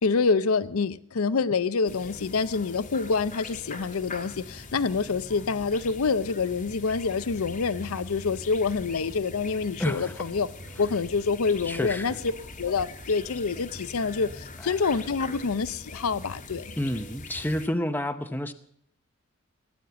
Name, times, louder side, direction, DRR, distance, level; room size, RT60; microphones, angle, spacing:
voice 1, 0.0-10.5 10.8-12.1 12.6-16.6, left 4 dB, 85° left, 0.6 m, -27 dB
sound 1, 1.8-17.7, left 2 dB, 40° left, 1.2 m, -42 dB
voice 2, 9.8-10.2 11.6-12.2 14.6-14.7 16.8-18.5, left 1 dB, 10° left, 0.7 m, -29 dB
17.5 x 9.5 x 6.9 m
head